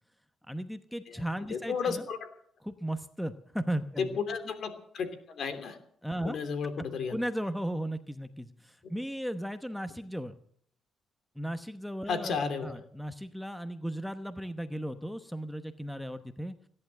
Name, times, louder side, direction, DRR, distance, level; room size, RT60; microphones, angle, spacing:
voice 1, 0.5-2.1 2.6-4.2 6.0-6.4 7.1-10.4 11.3-16.5, equal, ahead, 10 dB, 1.0 m, -36 dB
voice 2, 1.5-2.2 4.0-5.8 6.2-7.1 12.1-12.7, left 5 dB, 60° left, 8 dB, 3.1 m, -33 dB
17.0 x 11.0 x 7.7 m, 0.62 s
cardioid pair, 90°, 0 cm